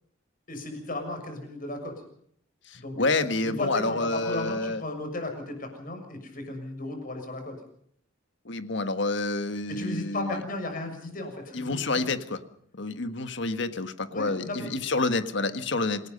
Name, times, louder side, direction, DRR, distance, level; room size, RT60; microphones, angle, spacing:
voice 1, 0.5-1.9 2.7-7.5 9.7-12.0 14.1-14.7, left 2 dB, 45° left, 5 dB, 6.8 m, -35 dB
voice 2, 2.6-4.8 8.4-10.4 11.5-12.4 12.7-16.1, left 3 dB, 65° left, 10 dB, 1.7 m, -28 dB
27.5 x 19.0 x 5.4 m, 0.65 s
head